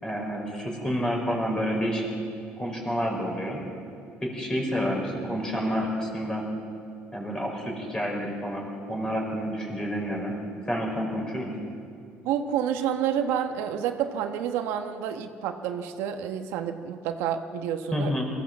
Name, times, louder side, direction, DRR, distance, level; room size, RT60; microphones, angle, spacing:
voice 1, 0.0-2.0 2.6-3.6 4.2-6.4 7.1-10.3 10.7-11.5 17.9-18.3, equal, 15° left, 0 dB, 4.7 m, -29 dB
voice 2, 12.2-18.1, right 9 dB, 85° right, 6 dB, 1.2 m, -29 dB
22.5 x 15.5 x 7.5 m, 2.5 s
cardioid pair, 150°, 4 cm